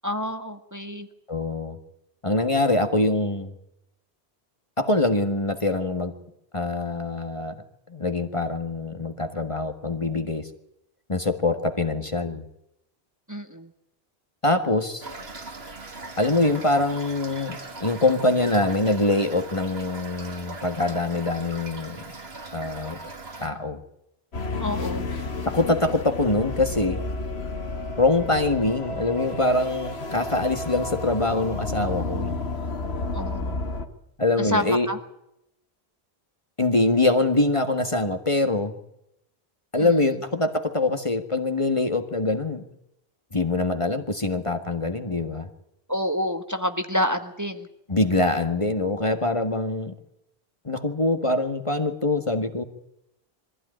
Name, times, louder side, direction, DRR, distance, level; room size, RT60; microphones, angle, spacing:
voice 1, 0.0-1.1 13.3-13.7 24.6-25.3 33.1-33.6 34.4-35.0 39.8-39.9 45.9-47.7, left 1 dB, 15° right, 7 dB, 1.6 m, -28 dB
voice 2, 1.3-1.8 2.2-3.5 4.8-6.1 6.5-7.5 7.9-10.5 11.1-12.4 14.4-15.0 16.2-22.0 22.5-23.0 23.4-23.8 25.4-27.0 28.0-32.3 34.2-34.9 36.6-38.8 39.7-42.6 43.3-45.5 47.9-49.9 50.6-52.6, left 2 dB, 30° left, 7 dB, 1.7 m, -24 dB
Toilet flush / Fill (with liquid), 15.0-23.5, right 3 dB, 75° right, 2.6 m, -40 dB
sound 1, 24.3-33.9, left 3 dB, 75° left, 2.0 m, -31 dB
23.5 x 15.5 x 10.0 m, 0.81 s
omnidirectional pair, 1.1 m